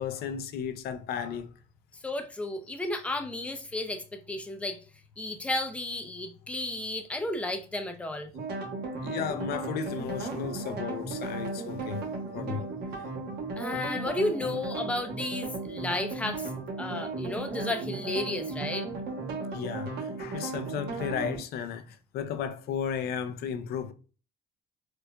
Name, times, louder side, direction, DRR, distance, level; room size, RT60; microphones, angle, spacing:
voice 1, 0.0-1.5 8.8-12.0 12.3-12.6 13.0-13.1 19.5-23.9, left 8 dB, 70° left, 0.5 m, -34 dB
voice 2, 2.0-4.8 5.2-8.3 12.5-12.6 13.6-16.5 16.8-18.9, left 2 dB, 5° left, 0.5 m, -33 dB
sound 1, 8.3-21.4, right 3 dB, 70° right, 1.1 m, -35 dB
4.5 x 2.4 x 2.2 m
cardioid pair, 110°, 17 cm